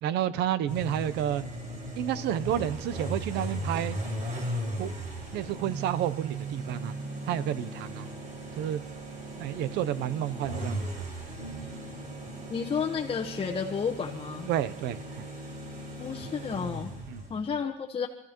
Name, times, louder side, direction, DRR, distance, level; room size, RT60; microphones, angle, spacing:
voice 1, 0.0-1.4 2.0-4.0 4.8-4.9 5.3-6.9 7.3-8.1 8.5-8.8 9.4-11.0 14.5-15.3 17.1-17.2, right 11 dB, 85° right, 16 dB, 0.7 m, -30 dB
sound 1, 0.7-17.5, right 1 dB, 50° right, 5.1 m, -37 dB
voice 2, 12.5-14.5 16.0-16.9 17.3-18.1, left 6 dB, 35° left, 1 dB, 1.1 m, -31 dB
27.5 x 14.5 x 3.0 m, 0.96 s
cardioid pair, 110°, 17 cm